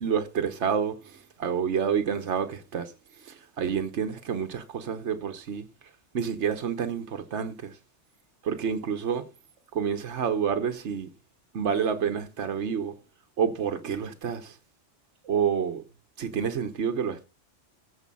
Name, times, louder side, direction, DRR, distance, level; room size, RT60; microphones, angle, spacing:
voice 1, 0.0-2.9 3.2-5.6 6.1-7.7 8.4-9.2 9.7-11.1 11.5-12.9 13.4-14.5 15.2-15.8 16.2-17.2, right 7 dB, 75° right, 1.4 m, -28 dB
14.5 x 5.0 x 5.4 m
omnidirectional pair, 1.2 m